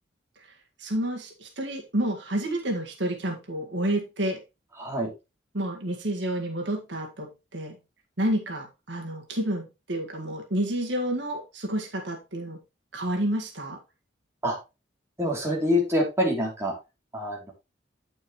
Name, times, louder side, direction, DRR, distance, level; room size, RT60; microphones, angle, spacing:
voice 1, 0.4-4.4 5.5-7.8 8.2-12.6 12.9-13.8, right 1 dB, 75° right, 2 dB, 1.8 m, -30 dB
voice 2, 15.2-16.7 17.1-17.5, left 1 dB, 15° right, -3 dB, 3.0 m, -25 dB
8.8 x 6.5 x 3.1 m, 0.25 s
head